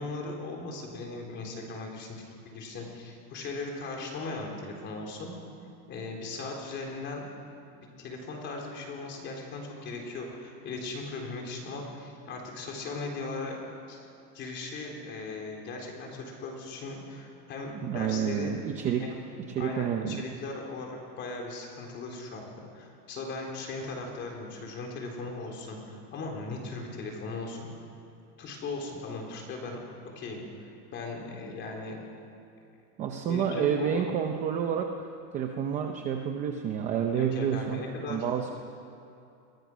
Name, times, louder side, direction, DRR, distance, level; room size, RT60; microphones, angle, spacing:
voice 1, 0.0-5.3 5.9-7.2 7.8-14.1 14.3-18.5 19.0-19.2 19.6-27.7 28.4-32.0 33.3-34.0 37.1-38.3, left 3 dB, 25° left, 1 dB, 3.8 m, -38 dB
voice 2, 17.8-19.0 19.5-20.2 33.0-37.8 38.1-38.5, right 8 dB, 15° right, 4 dB, 0.6 m, -29 dB
28.5 x 22.5 x 6.2 m, 2.6 s
supercardioid pair, 175°, 45 cm